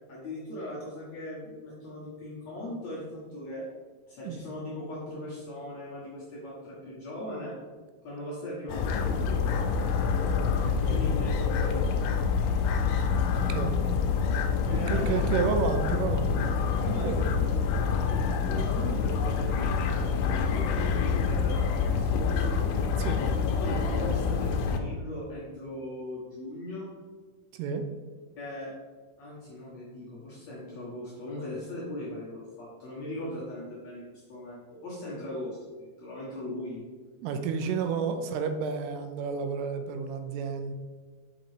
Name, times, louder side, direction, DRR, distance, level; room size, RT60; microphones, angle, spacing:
voice 1, 0.1-3.7 4.1-7.6 8.0-9.6 10.9-12.0 14.7-15.2 16.8-22.6 23.2-23.3 23.6-26.9 28.4-28.7 29.2-36.8, left 1 dB, 65° left, -8 dB, 1.8 m, -39 dB
sound 1, 8.7-24.8, left 5 dB, 85° left, 2.6 m, -27 dB
voice 2, 10.6-11.0 13.3-13.8 14.9-16.5 16.9-17.3 23.0-23.2 27.6-27.8 37.2-40.7, right 6 dB, 85° right, 7 dB, 2.5 m, -31 dB
6.3 x 5.6 x 3.2 m, 1.4 s
omnidirectional pair, 4.7 m